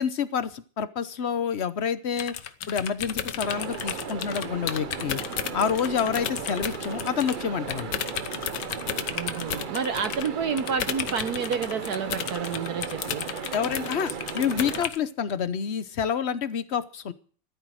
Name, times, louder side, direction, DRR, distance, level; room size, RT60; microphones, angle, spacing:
voice 1, 0.0-2.3 2.7-5.2 5.5-7.9 13.5-17.1, left 7 dB, 50° left, 13 dB, 0.8 m, -28 dB
sound 1, 2.2-7.4 7.7-15.0, left 9 dB, 70° left, 1.5 m, -33 dB
sound 2, 3.0-14.9, right 1 dB, 10° right, 2.9 m, -49 dB
sound 3, 3.4-14.8, right 6 dB, 85° right, 0.4 m, -36 dB
voice 2, 9.1-13.2, right 6 dB, 60° right, 10 dB, 1.3 m, -30 dB
14.0 x 12.5 x 6.3 m, 0.42 s
omnidirectional pair, 2.0 m